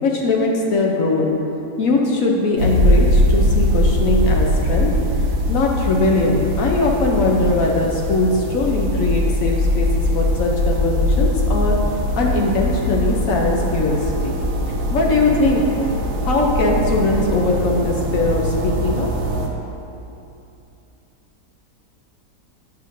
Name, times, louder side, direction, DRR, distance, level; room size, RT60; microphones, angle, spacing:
voice 1, 0.0-1.4 1.8-5.0 5.5-14.4 14.9-15.7 16.2-19.1, left 2 dB, 65° left, -1 dB, 0.9 m, -20 dB
sound 1, 2.6-19.5, equal, 70° right, 1.2 m, -21 dB
8.3 x 6.5 x 2.5 m, 2.8 s
omnidirectional pair, 1.8 m